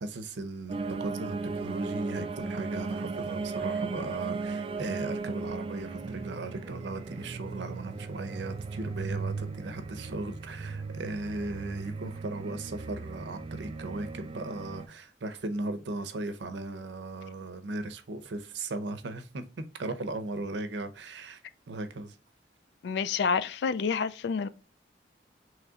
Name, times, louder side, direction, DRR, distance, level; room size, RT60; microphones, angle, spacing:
voice 1, 0.0-21.4 21.7-22.2, right 2 dB, 80° right, 0.6 m, -37 dB
sound 1, 0.7-14.9, right 4 dB, 30° right, 0.3 m, -36 dB
voice 2, 22.8-24.5, left 5 dB, 70° left, 0.3 m, -28 dB
3.8 x 3.1 x 3.5 m
head